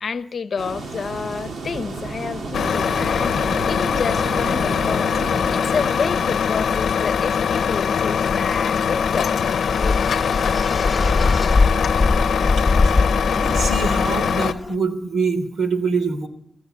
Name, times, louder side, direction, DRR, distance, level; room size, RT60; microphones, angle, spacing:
voice 1, 0.0-5.1 5.5-10.2, left 5 dB, 50° left, 1.0 m, -29 dB
sound 1, 0.6-6.4, right 3 dB, 65° right, 2.3 m, -32 dB
Truck, 2.5-14.5, left 7 dB, 85° left, 0.8 m, -22 dB
sound 2, 6.4-14.7, left 3 dB, 20° left, 1.0 m, -23 dB
voice 2, 13.3-16.3, right 4 dB, 85° right, 3.4 m, -24 dB
26.5 x 15.0 x 8.2 m
wide cardioid pair, 170°, 0 cm